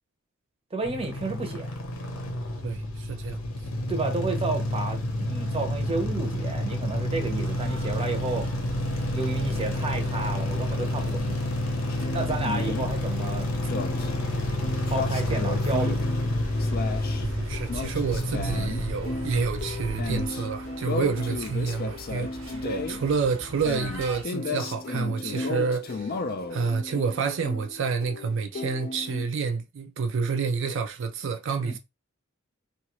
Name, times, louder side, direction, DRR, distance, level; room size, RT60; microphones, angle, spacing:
voice 1, 0.7-1.7 3.9-8.5 9.1-11.4 12.1-13.5 14.9-16.1 22.6-22.9 31.6-31.8, right 3 dB, 30° right, 0.7 m, -31 dB
sound 1, 0.8-20.3, left 1 dB, 85° left, 0.8 m, -29 dB
voice 2, 2.6-3.4 17.2-22.5 22.9-26.2 26.5-31.8, right 5 dB, 65° right, 0.4 m, -29 dB
sound 2, 7.1-24.2, right 1 dB, 85° right, 1.2 m, -44 dB
sound 3, 11.9-29.3, left 3 dB, 50° left, 0.4 m, -35 dB
2.9 x 2.4 x 3.0 m
head